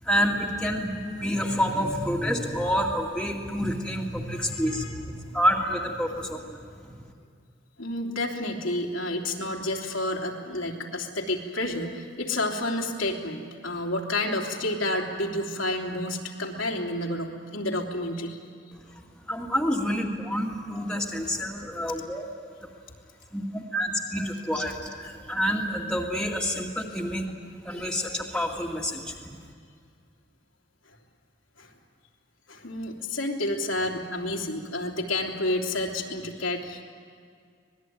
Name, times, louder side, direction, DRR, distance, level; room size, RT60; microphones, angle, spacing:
voice 1, 0.0-7.0 18.7-22.2 22.6-22.7 23.3-27.2 27.6-29.3, equal, 5° left, -2 dB, 2.2 m, -28 dB
voice 2, 4.3-4.9 7.8-18.4 31.6-31.7 32.5-36.8, left 1 dB, 85° left, 0 dB, 3.1 m, -30 dB
25.5 x 20.0 x 9.4 m, 2.2 s
head